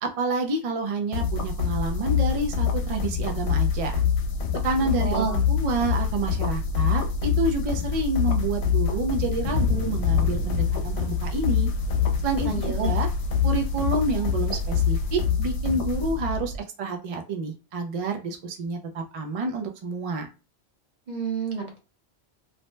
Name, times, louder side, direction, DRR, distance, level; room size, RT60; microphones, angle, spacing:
voice 1, 0.0-4.0 4.6-11.7 12.2-13.1 13.4-20.3, right 3 dB, 65° right, 3 dB, 0.3 m, -28 dB
sound 1, 1.1-16.6, left 6 dB, 75° left, 0.9 m, -25 dB
voice 2, 5.0-5.4 12.4-12.9 21.1-21.8, right 5 dB, 45° right, 3 dB, 0.7 m, -29 dB
Thunder / Rain, 9.4-15.1, left 2 dB, 35° left, 0.9 m, -35 dB
2.7 x 2.1 x 3.1 m, 0.32 s
omnidirectional pair, 1.2 m